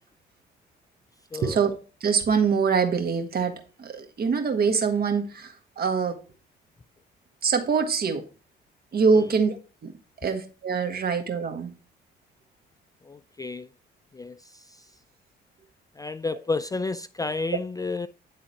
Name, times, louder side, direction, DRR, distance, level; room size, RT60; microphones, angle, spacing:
voice 1, 1.4-1.7 2.0-3.5 3.8-6.2 7.4-8.2 8.9-9.6 9.8-9.9 10.2-11.7, right 5 dB, 50° right, 1.5 m, -24 dB
voice 2, 13.1-13.7 14.1-14.4 16.0-18.1, left 3 dB, 20° left, 0.3 m, -31 dB
9.9 x 3.7 x 4.5 m
cardioid pair, 90°, 20 cm